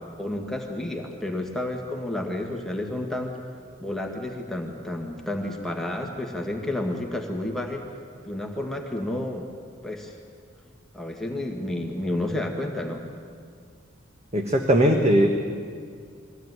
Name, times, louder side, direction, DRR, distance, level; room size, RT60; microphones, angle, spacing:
voice 1, 0.2-3.4 3.8-7.8 8.2-9.5 9.8-10.1 10.9-13.0, left 1 dB, ahead, 0 dB, 1.8 m, -30 dB
voice 2, 14.3-15.3, equal, 35° right, 2 dB, 1.4 m, -19 dB
23.0 x 15.5 x 9.6 m, 2.2 s
head